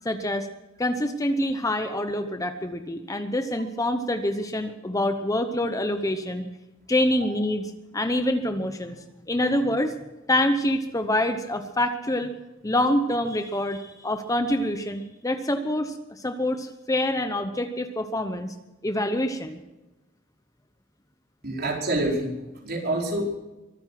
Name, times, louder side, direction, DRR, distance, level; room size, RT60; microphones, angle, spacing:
voice 1, 0.0-0.5 0.8-6.5 6.9-7.6 7.9-9.0 9.3-9.9 10.3-12.3 12.6-18.5 18.8-19.6, left 1 dB, 15° left, 8 dB, 0.8 m, -26 dB
voice 2, 21.4-23.4, right 1 dB, 50° right, -1 dB, 4.8 m, -27 dB
24.0 x 9.5 x 5.9 m, 1.1 s
head